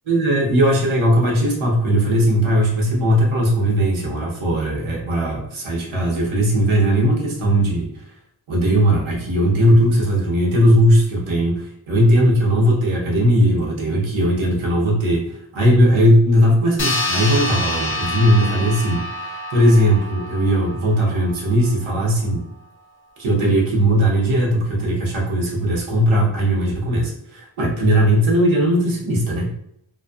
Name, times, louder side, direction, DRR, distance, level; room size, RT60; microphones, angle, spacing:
voice 1, 0.1-7.9 8.5-22.4 23.2-29.5, equal, 80° right, -3 dB, 0.9 m, -18 dB
sound 1, 16.8-21.7, left 1 dB, 25° left, 0.5 m, -27 dB
2.5 x 2.3 x 2.3 m, 0.73 s
wide cardioid pair, 125°, 47 cm